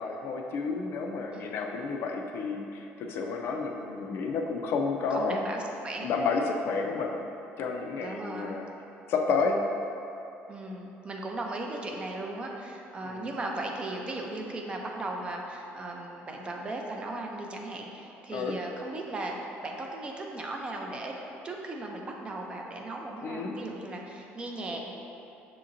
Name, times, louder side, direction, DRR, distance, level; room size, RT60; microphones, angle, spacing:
voice 1, 0.0-5.4 6.0-7.2 7.6-8.7 9.1-9.6 13.0-13.3 18.3-18.6 23.2-23.5, left 4 dB, 60° left, 2 dB, 0.4 m, -30 dB
voice 2, 5.1-6.1 8.0-8.6 10.5-21.1 21.4-24.9, right 2 dB, 25° right, 0 dB, 0.4 m, -37 dB
6.2 x 2.9 x 2.5 m, 2.9 s
cardioid pair, 145°, 4 cm